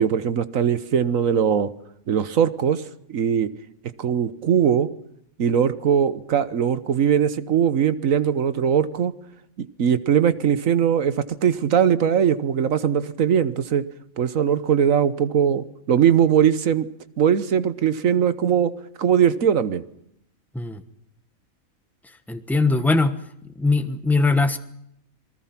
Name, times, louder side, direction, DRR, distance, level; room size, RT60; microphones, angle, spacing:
voice 1, 0.0-1.7 2.1-2.8 3.1-3.5 4.0-4.9 5.4-9.1 9.6-13.8 14.2-16.9 17.2-18.7 19.0-19.8, right 8 dB, 70° right, 14 dB, 1.4 m, -20 dB
voice 2, 22.3-23.1 23.6-24.6, left 3 dB, ahead, 8 dB, 1.2 m, -20 dB
27.0 x 20.0 x 6.0 m, 0.73 s
omnidirectional pair, 1.5 m